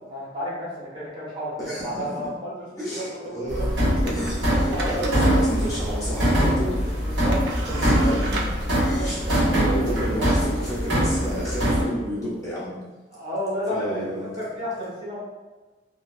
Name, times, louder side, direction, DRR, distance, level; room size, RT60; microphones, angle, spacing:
voice 1, 0.0-4.1 4.4-5.1 6.1-8.2 9.0-9.3 13.1-15.2, equal, 25° right, -7 dB, 0.7 m, -33 dB
voice 2, 1.6-2.3 2.8-3.7 4.0-7.2 7.7-8.5 8.8-12.7 13.7-14.4, equal, 20° left, -8 dB, 0.6 m, -31 dB
sound 1, 3.5-11.8, equal, 90° right, 0.8 m, -23 dB
sound 2, 4.0-12.5, right 2 dB, 65° right, 0.4 m, -37 dB
2.6 x 2.3 x 2.3 m, 1.3 s
head